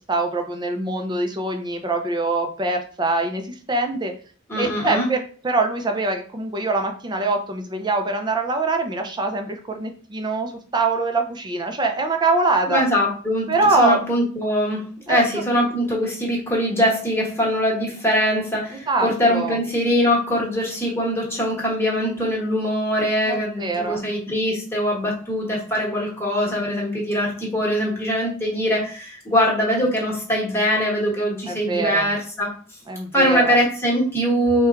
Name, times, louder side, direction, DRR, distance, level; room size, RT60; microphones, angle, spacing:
voice 1, 0.1-4.1 4.6-5.2 5.4-12.8 13.5-14.0 15.1-15.2 18.9-19.6 23.3-24.1 31.5-32.1 32.9-33.6, right 3 dB, 20° right, 5 dB, 0.5 m, -23 dB
voice 2, 4.5-5.1 12.7-32.5 33.1-34.7, equal, 10° left, -3 dB, 1.2 m, -22 dB
4.2 x 2.2 x 3.5 m, 0.42 s
head